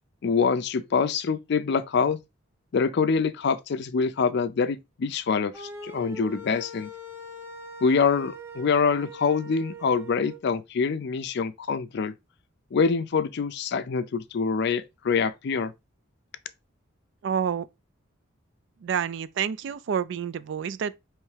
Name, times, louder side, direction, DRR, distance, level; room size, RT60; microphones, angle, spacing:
voice 1, 0.2-2.2 2.7-6.9 7.8-12.1 12.7-15.7, left 5 dB, 55° left, 0.4 m, -25 dB
sound 1, 5.5-10.4, right 1 dB, 10° right, 0.7 m, -42 dB
voice 2, 17.2-17.7 18.8-21.0, right 8 dB, 60° right, 0.3 m, -28 dB
4.5 x 3.1 x 3.2 m
head